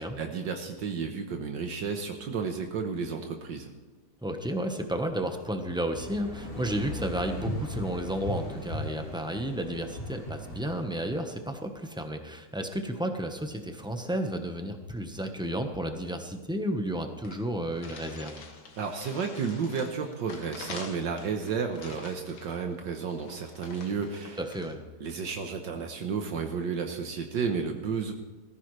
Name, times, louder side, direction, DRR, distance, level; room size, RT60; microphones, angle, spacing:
voice 1, 0.0-3.7 18.8-24.4 25.0-28.1, right 5 dB, 75° right, 4 dB, 1.7 m, -32 dB
voice 2, 4.2-18.4 24.4-24.8, right 1 dB, 5° right, 5 dB, 0.8 m, -32 dB
sound 1, 5.9-11.4, equal, 30° left, 2.1 m, -38 dB
sound 2, 16.9-17.0 17.2-24.8, left 4 dB, 65° left, 2.0 m, -46 dB
19.5 x 14.5 x 3.3 m, 1.3 s
omnidirectional pair, 2.0 m